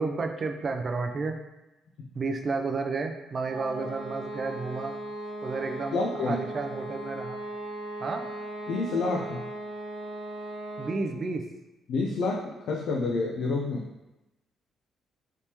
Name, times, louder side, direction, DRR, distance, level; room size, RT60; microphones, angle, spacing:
voice 1, 0.0-1.4 2.1-4.9 5.4-7.4 8.0-8.3 10.8-11.5, right 4 dB, 40° right, 5 dB, 0.4 m, -31 dB
sound 1, 3.4-11.1, right 1 dB, 70° right, 1.0 m, -38 dB
voice 2, 5.9-6.4 8.7-9.4 11.9-13.8, left 3 dB, 75° left, -1 dB, 0.4 m, -28 dB
3.4 x 2.9 x 2.8 m, 0.98 s
cardioid pair, 90°, 0 cm